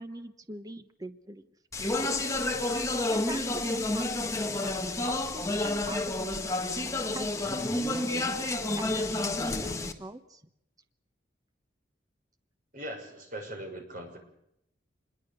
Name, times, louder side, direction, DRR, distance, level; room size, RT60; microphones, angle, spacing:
voice 1, 0.0-1.4 3.1-4.8 5.0-6.4 7.1-8.5 8.7-10.4, right 1 dB, 20° right, 9 dB, 1.1 m, -43 dB
Speech, 1.7-9.9, left 2 dB, 15° left, 1.7 m, -30 dB
voice 2, 12.7-14.2, right 1 dB, 45° right, 3 dB, 6.4 m, -40 dB
27.0 x 21.5 x 6.8 m, 0.78 s
head